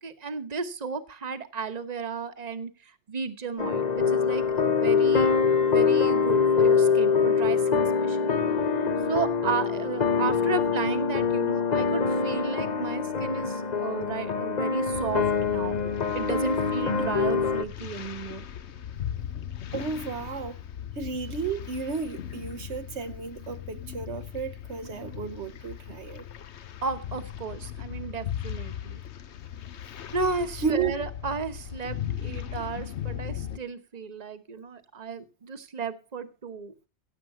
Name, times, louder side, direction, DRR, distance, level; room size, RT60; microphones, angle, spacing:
voice 1, 0.0-2.7 3.1-5.3 5.6-8.4 9.1-15.8 16.1-18.5 26.8-29.0 30.1-36.7, right 5 dB, 35° right, 1.3 m, -33 dB
sound 1, 3.6-17.6, left 5 dB, 40° left, 0.9 m, -24 dB
sound 2, 14.9-33.6, left 10 dB, 75° left, 1.1 m, -38 dB
voice 2, 19.7-20.6 21.0-26.2 30.6-30.9, right 5 dB, 75° right, 1.3 m, -32 dB
16.5 x 7.8 x 5.8 m
omnidirectional pair, 1.2 m